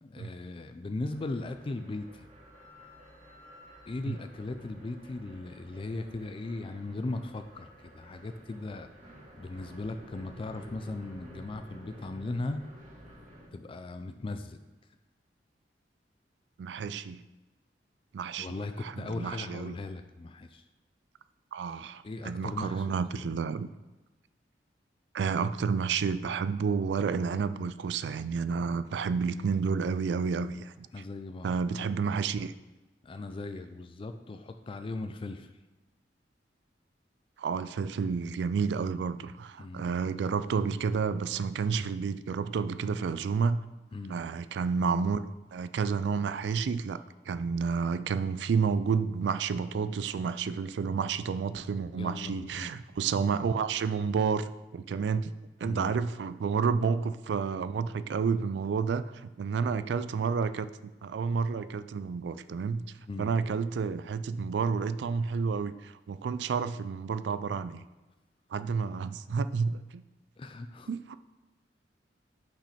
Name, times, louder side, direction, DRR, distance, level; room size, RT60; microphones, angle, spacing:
voice 1, 0.0-2.3 3.9-8.9 9.4-12.6 13.5-14.6 18.4-20.6 22.0-22.9 23.2-23.5 30.9-31.5 33.0-35.5 39.6-40.0 43.9-44.2 52.0-52.7 55.6-56.0 63.0-63.3 70.4-70.9, left 2 dB, 30° left, 8 dB, 0.3 m, -38 dB
sound 1, 1.1-13.5, equal, 45° right, 1.9 m, -52 dB
voice 2, 16.6-17.2 18.1-18.5 18.8-19.8 21.5-23.7 25.1-30.9 31.4-32.5 37.4-43.6 44.1-45.2 45.5-55.3 55.6-62.9 63.2-67.8 68.5-70.0 70.9-71.2, right 5 dB, 75° right, 14 dB, 0.3 m, -30 dB
5.9 x 5.3 x 4.2 m, 1.1 s
head